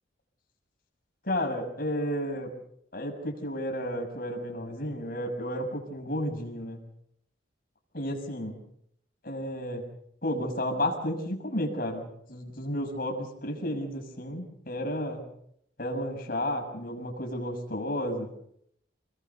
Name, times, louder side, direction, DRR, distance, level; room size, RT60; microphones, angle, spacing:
voice 1, 1.2-2.5 2.9-6.8 7.9-8.6 9.2-9.9 10.2-15.3 15.8-18.3, equal, 50° left, 2 dB, 6.4 m, -32 dB
28.0 x 21.0 x 7.0 m, 0.72 s
head